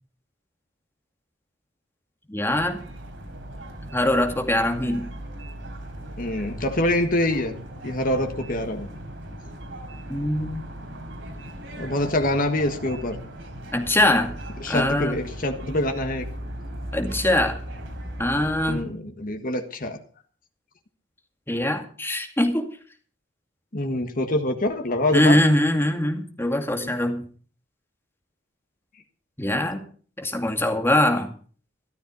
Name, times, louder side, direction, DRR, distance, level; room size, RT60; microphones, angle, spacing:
voice 1, 2.3-2.8 3.9-5.1 10.1-10.6 13.7-14.3 14.7-15.2 16.9-17.6 18.2-18.8 21.5-22.7 25.1-27.3 29.4-29.8 30.2-31.3, left 1 dB, 15° left, 2.3 m, -22 dB
sound 1, 2.5-18.8, right 1 dB, 70° right, 3.8 m, -37 dB
voice 2, 6.2-7.6 7.8-8.9 11.8-13.2 14.6-16.3 18.7-20.0 23.7-25.4 26.8-26.9, left 1 dB, 50° left, 1.6 m, -25 dB
14.0 x 13.5 x 5.5 m
head